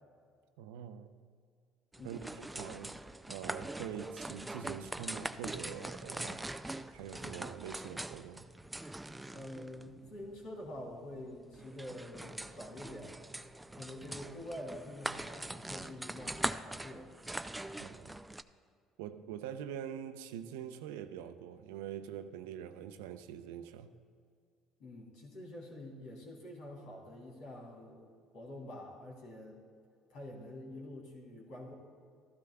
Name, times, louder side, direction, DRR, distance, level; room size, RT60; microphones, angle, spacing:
voice 1, 0.6-1.1 2.0-3.0 3.3-6.4 6.9-8.4 17.8-18.2 19.0-23.9, right 9 dB, 85° right, 10 dB, 0.5 m, -44 dB
sound 1, 1.9-18.4, right 1 dB, 10° right, 0.4 m, -43 dB
voice 2, 2.0-2.3 9.3-13.1 13.8-17.1 24.8-28.0 28.3-29.6 30.1-31.7, left 1 dB, 70° left, -3 dB, 3.0 m, -47 dB
14.0 x 12.0 x 2.3 m, 2.2 s
hypercardioid pair, 75°, 0 cm